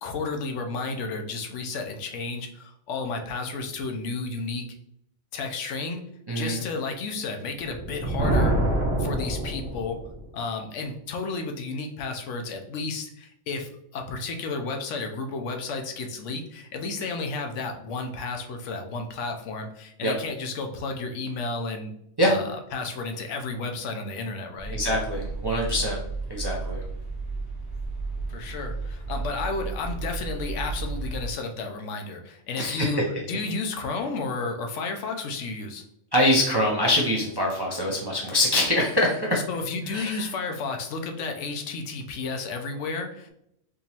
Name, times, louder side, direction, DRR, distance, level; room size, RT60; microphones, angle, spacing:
voice 1, 0.0-4.7 5.3-6.0 6.3-8.7 9.0-10.0 10.3-21.9 22.2-24.8 28.3-35.8 39.3-43.3, left 3 dB, 80° left, 4 dB, 0.9 m, -32 dB
voice 2, 6.3-6.6 20.0-20.1 22.2-22.4 24.7-26.0 26.3-26.8 32.6-33.0 36.1-39.4 39.9-40.3, left 1 dB, 35° right, -3 dB, 0.4 m, -24 dB
Thunder, 7.6-10.2, right 1 dB, 60° right, 1.1 m, -26 dB
sound 1, 24.6-31.3, right 3 dB, 45° left, 1.3 m, -33 dB
3.6 x 2.9 x 2.8 m, 0.76 s
omnidirectional pair, 1.3 m